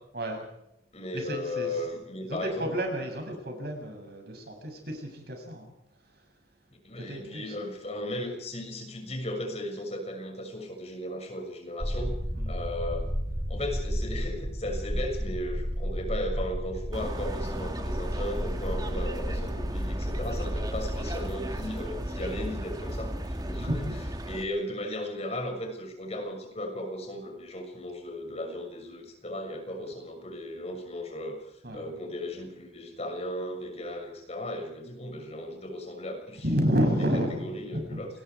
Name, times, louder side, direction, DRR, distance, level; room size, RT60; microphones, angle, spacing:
voice 1, 0.1-0.5 1.1-1.8 2.3-5.7 6.0-6.2 7.0-7.5 12.4-12.5 23.6-24.0 29.8-29.9 31.6-31.9 36.4-38.0, equal, 60° right, 4 dB, 7.3 m, -31 dB
voice 2, 0.9-2.7 6.8-13.1 13.5-23.9 24.3-36.4 36.8-36.9 37.4-38.1, left 1 dB, 35° left, 3 dB, 6.5 m, -36 dB
sound 1, 11.8-22.4, equal, ahead, 5.2 m, -33 dB
sound 2, 16.9-24.4, equal, 20° right, 2.2 m, -34 dB
29.0 x 21.5 x 4.8 m, 0.81 s
head